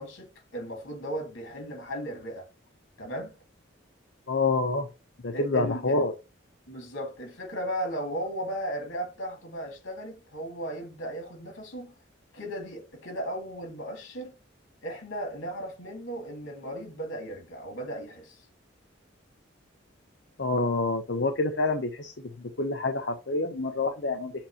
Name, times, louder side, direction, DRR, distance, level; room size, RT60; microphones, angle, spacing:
voice 1, 0.0-2.5 3.0-3.4 5.3-6.1 6.7-11.9 12.3-14.3 14.8-18.4, equal, 85° left, 3.1 m, -36 dB
voice 2, 4.3-4.9 5.2-6.1 20.4-24.3, left 3 dB, 65° left, 0.8 m, -27 dB
7.3 x 2.9 x 5.0 m
head